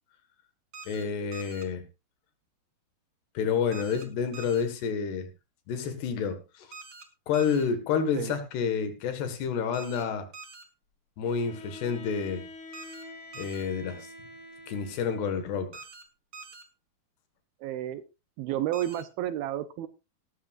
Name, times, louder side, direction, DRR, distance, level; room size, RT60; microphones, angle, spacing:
sound 1, 0.7-1.0 1.3-1.6 3.7-4.0 4.3-4.6 6.7-7.0 7.3-7.6 9.7-10.0 10.3-10.6 12.7-13.0 13.3-13.6 15.7-16.0 16.3-16.6 18.7-19.0, right 4 dB, 45° right, 2.2 m, -45 dB
voice 1, 0.9-1.8 3.4-5.3 5.7-6.7 7.3-10.3 11.2-12.4 13.4-14.1 14.7-15.8, left 6 dB, 80° left, 9 dB, 3.8 m, -29 dB
Bowed string instrument, 11.2-15.5, left 1 dB, 40° left, 2.4 m, -46 dB
voice 2, 17.6-18.0 18.4-19.9, right 12 dB, 75° right, 12 dB, 2.4 m, -31 dB
17.5 x 13.0 x 2.5 m, 0.27 s
omnidirectional pair, 4.7 m